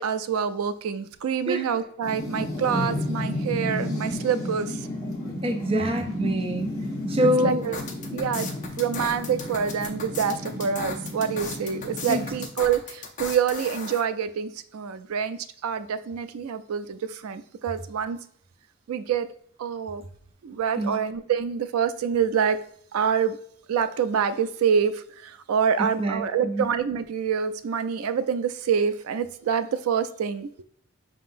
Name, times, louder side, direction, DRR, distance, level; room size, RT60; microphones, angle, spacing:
voice 1, 0.0-4.9 7.4-7.8 8.1-8.5 8.8-18.2 18.9-19.3 19.6-20.0 20.4-22.6 22.9-23.4 23.7-30.6, right 7 dB, 90° right, 12 dB, 0.4 m, -26 dB
voice 2, 1.5-1.8 5.4-6.8 7.1-7.7 12.1-12.3 20.8-21.0 25.8-26.7, equal, 25° right, 4 dB, 0.4 m, -26 dB
sound 1, 2.0-12.5, left 1 dB, 15° left, 1.2 m, -32 dB
sound 2, 7.6-14.0, left 4 dB, 35° left, 0.7 m, -37 dB
5.6 x 3.7 x 2.5 m, 0.63 s
head